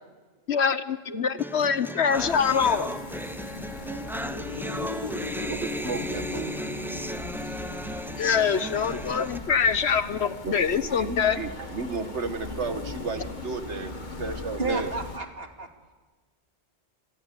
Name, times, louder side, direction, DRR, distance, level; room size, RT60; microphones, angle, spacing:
voice 1, 0.5-2.9 8.2-11.4, left 6 dB, 70° left, 13 dB, 1.3 m, -24 dB
voice 2, 1.1-1.4 2.2-2.3 3.3-3.4 3.8-4.5 5.5-7.0 9.6-9.7 10.4-14.9, right 4 dB, 80° right, 8 dB, 1.8 m, -34 dB
sound 1, 1.4-9.4, equal, 5° right, 0.4 m, -35 dB
sound 2, 2.1-15.2, left 3 dB, 45° left, 1.8 m, -38 dB
voice 3, 7.3-8.2 12.0-12.1 14.6-15.7, right 3 dB, 60° right, 4 dB, 2.8 m, -35 dB
27.5 x 22.0 x 8.5 m, 1.3 s
omnidirectional pair, 1.2 m